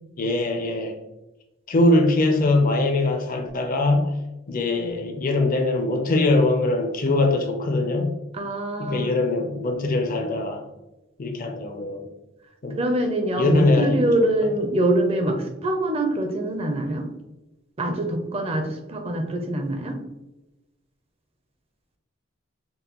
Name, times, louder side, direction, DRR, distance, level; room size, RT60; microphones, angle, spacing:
voice 1, 0.2-1.0 1.7-4.1 4.5-8.1 8.8-10.6 11.2-12.1 12.6-12.8 13.4-14.5, left 2 dB, 40° left, 5 dB, 0.5 m, -22 dB
voice 2, 8.3-9.1 12.7-17.1 17.8-20.0, right 1 dB, 30° right, 4 dB, 0.5 m, -24 dB
5.3 x 2.2 x 2.9 m, 0.99 s
head